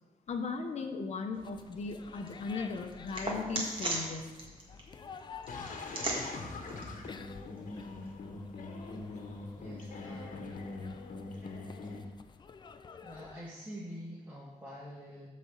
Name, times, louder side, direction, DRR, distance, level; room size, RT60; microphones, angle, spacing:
voice 1, 0.3-4.4, left 4 dB, 55° left, 5 dB, 0.8 m, -37 dB
sound 1, 1.3-8.1, right 2 dB, 40° right, 1.6 m, -41 dB
sound 2, 1.4-13.5, left 5 dB, 35° left, 0.4 m, -51 dB
sound 3, 5.5-12.0, left 3 dB, 70° left, 1.1 m, -42 dB
voice 2, 9.6-10.6 13.0-15.3, equal, 15° right, -6 dB, 1.5 m, -46 dB
8.5 x 4.2 x 7.1 m, 1.2 s
wide cardioid pair, 160°, 14 cm